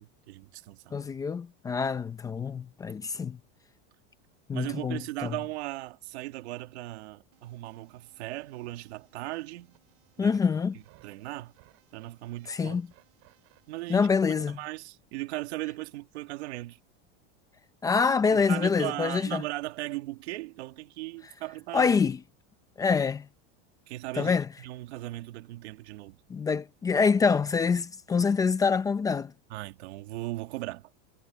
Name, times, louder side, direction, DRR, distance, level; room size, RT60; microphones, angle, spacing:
voice 1, 0.0-0.9 4.5-9.8 10.2-10.4 11.0-11.5 11.9-12.8 13.7-14.1 14.5-16.8 18.3-22.0 23.9-26.2 29.5-30.9, right 18 dB, 85° right, 1.9 m, -38 dB
voice 2, 0.9-3.4 4.5-5.3 10.2-10.8 12.5-12.9 13.9-14.6 17.8-19.4 21.7-22.2 22.8-23.3 24.2-24.5 26.3-29.3, left 5 dB, 10° left, 0.5 m, -26 dB
sound 1, 7.3-13.8, right 21 dB, 45° right, 7.1 m, -64 dB
supercardioid pair, 170°, 32 cm